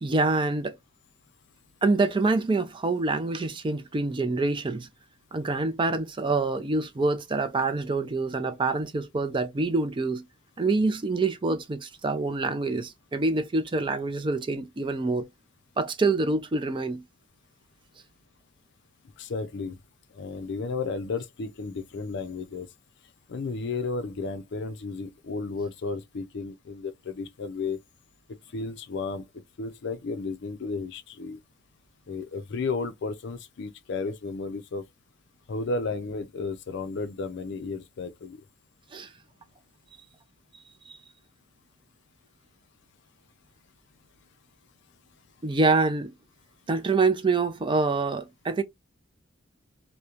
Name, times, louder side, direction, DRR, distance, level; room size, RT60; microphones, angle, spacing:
voice 1, 0.0-0.8 1.8-4.9 5.3-10.2 10.6-15.3 15.8-17.0 38.9-39.1 40.9-41.0 45.4-46.1 46.7-48.6, right 3 dB, 25° right, 0.4 m, -26 dB
voice 2, 19.2-19.8 20.1-22.7 23.3-27.8 28.5-29.2 29.6-31.4 32.1-34.8 35.5-38.4, left 4 dB, 60° left, 0.4 m, -33 dB
2.8 x 2.1 x 2.4 m
head